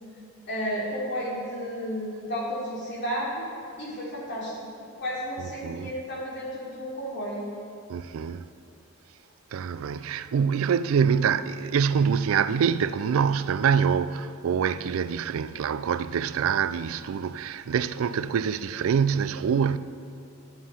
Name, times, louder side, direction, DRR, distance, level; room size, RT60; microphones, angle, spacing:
voice 1, 0.5-3.5 3.8-4.6 5.0-7.4, equal, 55° left, 3.1 m, -32 dB
voice 2, 5.4-5.9 7.9-8.5 9.5-19.8, right 7 dB, 75° right, 0.3 m, -25 dB
11.5 x 7.5 x 5.5 m
head